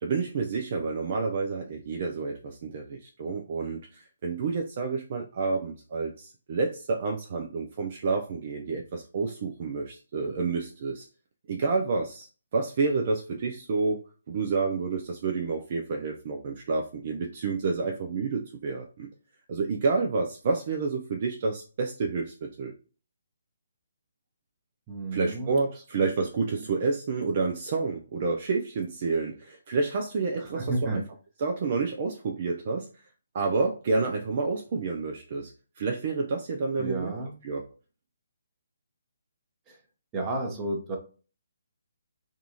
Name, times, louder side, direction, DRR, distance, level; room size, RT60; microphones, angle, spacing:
voice 1, 0.0-11.1 11.5-12.3 12.5-14.0 14.3-19.1 19.5-22.7 25.1-31.0 31.4-32.9 33.3-35.5 35.8-37.1 37.4-37.6, right 4 dB, 40° right, 3 dB, 0.4 m, -29 dB
voice 2, 24.9-25.6 26.6-26.7 30.4-31.0 36.8-37.3 39.7-39.8 40.1-41.0, right 2 dB, 20° right, 2 dB, 0.7 m, -32 dB
3.6 x 2.3 x 2.8 m, 0.37 s
figure-of-eight pair, 140°, 0 cm